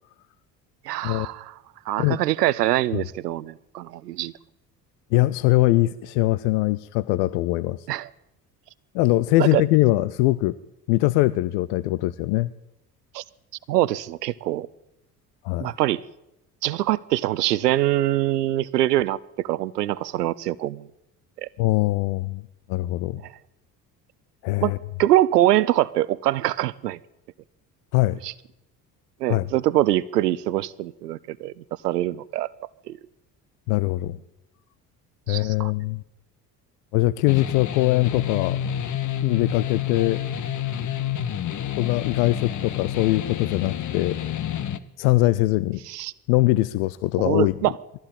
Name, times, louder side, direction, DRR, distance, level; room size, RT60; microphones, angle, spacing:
voice 1, 0.8-1.5 1.9-4.3 7.9-8.1 9.4-9.6 13.1-13.2 13.7-14.7 15.6-16.0 16.6-20.8 21.4-21.5 24.6-24.7 25.0-27.0 28.2-28.3 29.2-31.5 31.8-32.5 32.9-33.0 35.3-35.7 45.9-46.1 47.2-47.7, right 14 dB, 75° right, 0.7 m, -23 dB
voice 2, 5.1-7.9 8.9-10.6 10.9-12.5 15.4-15.7 21.6-22.4 22.7-23.2 24.4-24.8 27.9-28.2 29.3-29.4 33.7-34.2 35.3-36.0 36.9-38.6 39.2-40.2 41.8-44.2 45.0-45.8 46.3-47.7, left 18 dB, 60° left, 0.7 m, -22 dB
sound 1, 37.3-44.8, left 10 dB, 40° left, 1.4 m, -29 dB
21.0 x 15.5 x 8.7 m
figure-of-eight pair, 55°, 48 cm